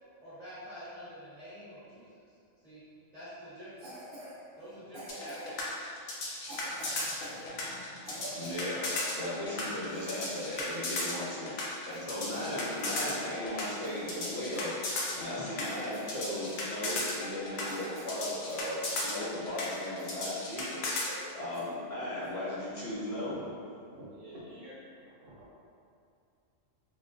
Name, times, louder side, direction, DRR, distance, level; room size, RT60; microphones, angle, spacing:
voice 1, 0.2-2.1 2.6-2.8 3.1-3.9 4.6-5.6, equal, 30° right, -15 dB, 1.1 m, -47 dB
Cough, 3.8-4.3 4.9-5.6 6.4-9.1 9.5-9.6 9.9-11.2 11.5-13.0 13.4-13.5 13.8-14.7 15.0-15.2 15.6-16.2 16.5-16.7 17.2-17.3 17.6-18.7 19.1-19.2 19.6-20.3 20.6-20.7 21.0-21.3 21.5-21.7 22.2-22.4, equal, 55° right, 0.9 m, -46 dB
sound 1, 5.1-21.1, left 2 dB, 85° left, 1.0 m, -35 dB
voice 2, 6.5-8.8 9.1-14.7 15.1-20.9 21.3-23.3, left 1 dB, 45° left, -10 dB, 0.4 m, -37 dB
voice 3, 23.7-25.4, equal, 75° right, -8 dB, 1.2 m, -48 dB
3.5 x 2.4 x 2.5 m, 2.5 s
omnidirectional pair, 1.4 m